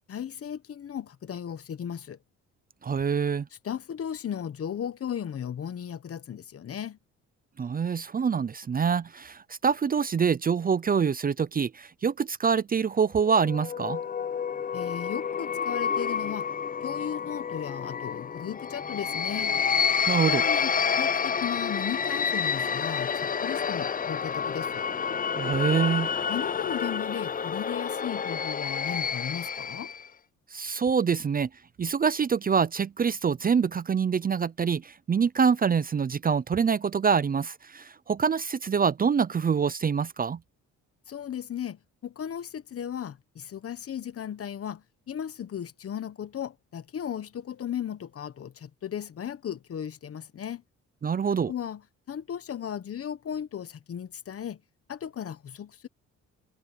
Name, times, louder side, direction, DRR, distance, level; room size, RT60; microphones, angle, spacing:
voice 1, 0.1-2.2 3.6-7.0 14.7-16.5 16.8-19.5 20.3-20.7 21.0-24.8 26.3-29.9 41.1-50.6 51.5-51.8 52.1-54.6 54.9-55.9, left 9 dB, 50° left, 1.2 m, -36 dB
voice 2, 2.8-3.5 7.6-14.0 20.1-20.4 25.4-26.1 30.5-31.5 31.8-40.4 51.0-51.5, right 6 dB, 30° right, 0.6 m, -25 dB
sound 1, 13.3-30.1, left 6 dB, 30° left, 0.6 m, -29 dB
cardioid pair, 90°, 30 cm